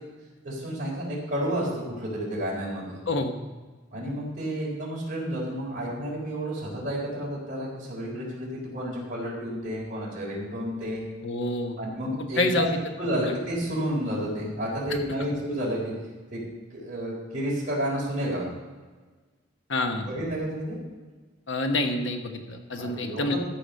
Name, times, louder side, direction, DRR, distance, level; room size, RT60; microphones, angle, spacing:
voice 1, 0.4-3.0 3.9-11.0 11.8-12.7 13.0-15.9 16.3-16.4 16.7-18.4 19.9-20.8 22.7-23.4, equal, 45° right, -4 dB, 4.0 m, -31 dB
voice 2, 11.2-11.8 12.2-12.7 13.2-13.3 19.7-20.1 21.5-23.4, left 2 dB, 80° left, 5 dB, 1.1 m, -27 dB
13.5 x 5.0 x 6.4 m, 1.3 s
head